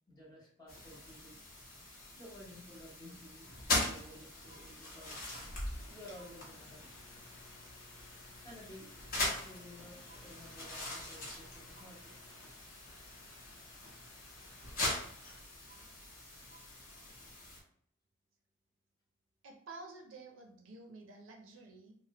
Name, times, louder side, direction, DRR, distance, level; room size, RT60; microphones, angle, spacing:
voice 1, 0.1-1.4 2.2-3.5 3.8-5.3 5.9-6.9 8.4-8.9 9.4-12.2, left 1 dB, 20° left, -5 dB, 0.9 m, -53 dB
sound 1, 0.7-17.6, left 1 dB, 45° left, 0.9 m, -41 dB
sound 2, 5.1-15.4, left 3 dB, 70° left, 0.5 m, -59 dB
voice 2, 19.4-22.0, right 3 dB, 75° right, 2 dB, 0.5 m, -51 dB
3.3 x 2.1 x 2.8 m, 0.63 s
head